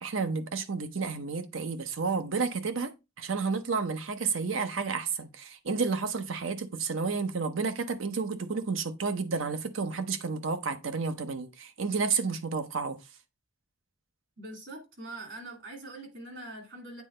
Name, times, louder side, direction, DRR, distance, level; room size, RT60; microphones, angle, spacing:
voice 1, 0.0-2.9 3.2-13.0, right 4 dB, 90° right, 0.8 m, -31 dB
voice 2, 14.4-17.0, right 2 dB, 65° right, 2.4 m, -43 dB
8.3 x 3.9 x 3.2 m
head